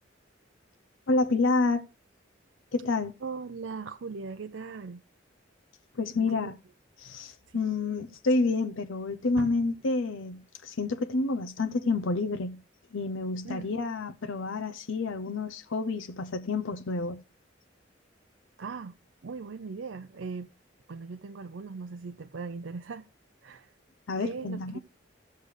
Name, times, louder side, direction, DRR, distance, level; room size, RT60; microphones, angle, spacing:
voice 1, 1.1-1.9 2.7-3.2 5.9-6.6 7.0-12.6 12.9-17.2 24.1-24.8, left 3 dB, 90° left, 0.7 m, -29 dB
voice 2, 3.2-5.0 6.1-6.5 7.5-7.6 9.4-9.5 13.4-13.7 18.6-19.0 19.2-20.5 20.9-23.1 23.4-23.7 24.2-24.8, right 4 dB, 75° right, 0.6 m, -39 dB
15.5 x 6.5 x 3.2 m
head